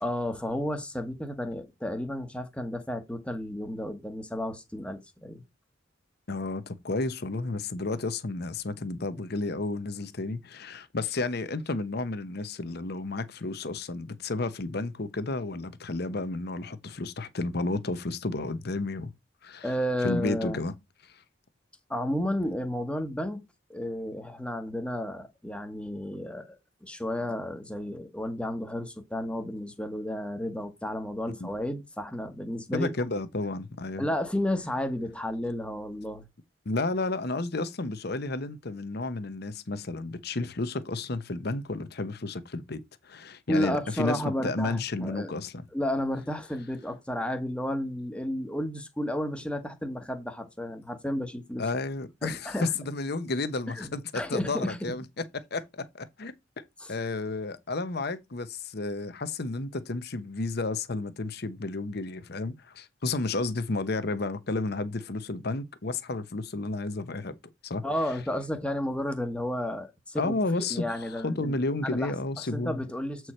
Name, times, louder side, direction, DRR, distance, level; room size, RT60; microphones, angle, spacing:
voice 1, 0.0-5.4 19.6-20.6 21.9-23.4 23.7-32.9 34.0-36.3 43.5-45.3 45.7-51.6 52.2-52.7 53.7-54.9 56.8-56.9 67.8-71.6 71.8-72.1 72.5-73.3, left 1 dB, 5° left, 1.1 m, -32 dB
voice 2, 6.3-19.1 19.4-19.7 20.0-20.7 31.4-31.5 32.7-34.0 36.7-45.6 51.6-55.0 55.3-56.6 56.9-67.4 67.6-67.8 70.2-72.8, left 2 dB, 55° left, 0.9 m, -32 dB
8.0 x 4.7 x 4.3 m
head